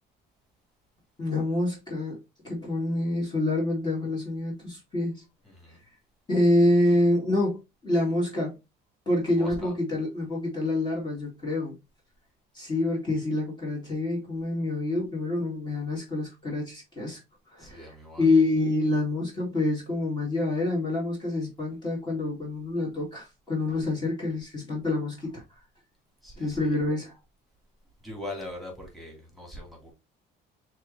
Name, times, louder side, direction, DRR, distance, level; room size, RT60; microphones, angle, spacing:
voice 1, 1.2-2.2 2.4-5.2 6.3-8.5 9.1-11.7 12.5-17.2 17.5-25.4 26.4-27.1, left 2 dB, 20° left, 2.1 m, -27 dB
voice 2, 5.4-5.8 9.4-9.7 17.6-18.2 26.2-26.8 28.0-29.9, left 1 dB, ahead, 2.3 m, -41 dB
6.3 x 3.0 x 2.6 m
cardioid pair, 130°, 20 cm